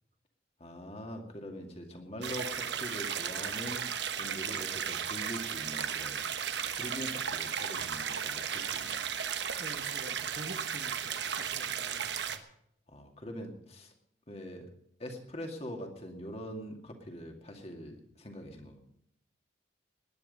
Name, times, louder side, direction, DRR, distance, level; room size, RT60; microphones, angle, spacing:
voice 1, 0.6-3.9 4.2-9.0 12.9-13.9 14.3-14.7 15.0-18.8, equal, 35° left, 3 dB, 2.3 m, -43 dB
sound 1, 2.2-12.4, right 8 dB, 70° right, 1.2 m, -35 dB
voice 2, 9.6-12.4, right 2 dB, 45° right, 7 dB, 1.3 m, -47 dB
20.0 x 10.0 x 5.4 m, 0.75 s
head